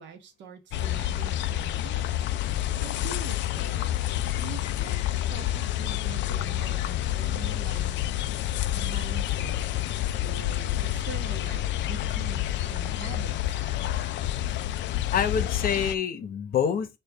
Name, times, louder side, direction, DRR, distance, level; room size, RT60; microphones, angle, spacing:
voice 1, 0.0-2.1 2.8-3.9 4.4-5.0 5.3-7.9 8.7-9.6 10.2-13.6, right 7 dB, 70° right, 1.0 m, -43 dB
sound 1, 0.7-15.9, left 13 dB, 75° left, 0.4 m, -28 dB
voice 2, 13.5-14.2 15.1-16.9, left 7 dB, 50° left, 0.8 m, -28 dB
6.7 x 2.4 x 3.4 m
cardioid pair, 160°, 19 cm